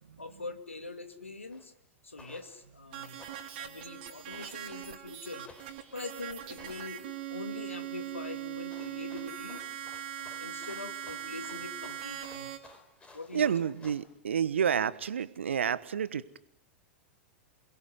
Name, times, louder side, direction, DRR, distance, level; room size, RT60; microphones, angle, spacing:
voice 1, 0.2-1.7 2.0-3.2 3.6-5.5 5.9-9.6 10.2-12.6 13.1-13.5, left 3 dB, 85° left, 9 dB, 2.4 m, -43 dB
sound 1, 1.5-1.7 2.2-2.6 3.2-3.7 4.3-4.9 5.5-6.0 6.6-7.1 8.7-14.0, left 3 dB, 15° left, 4.8 m, -56 dB
sound 2, 2.9-12.6, right 11 dB, 55° right, 3.2 m, -41 dB
voice 2, 13.3-16.4, right 8 dB, 70° right, 17 dB, 1.2 m, -30 dB
28.0 x 21.0 x 9.5 m, 0.82 s
figure-of-eight pair, 95°, 7 cm